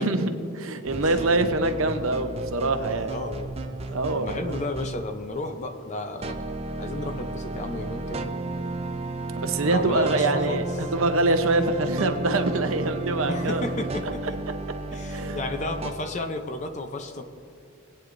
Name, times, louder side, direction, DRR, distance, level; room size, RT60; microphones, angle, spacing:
voice 1, 0.0-3.1 3.9-4.6 9.4-13.7 14.2-14.3 15.1-15.4, right 2 dB, 65° right, 7 dB, 0.8 m, -25 dB
sound 1, 0.9-5.1 6.2-15.9, right 2 dB, 25° right, 0.5 m, -33 dB
voice 2, 3.0-3.6 4.1-8.3 9.6-10.6 13.3-14.4 14.9-17.2, left 2 dB, 30° left, 7 dB, 0.6 m, -33 dB
20.0 x 9.1 x 2.6 m, 2.6 s
head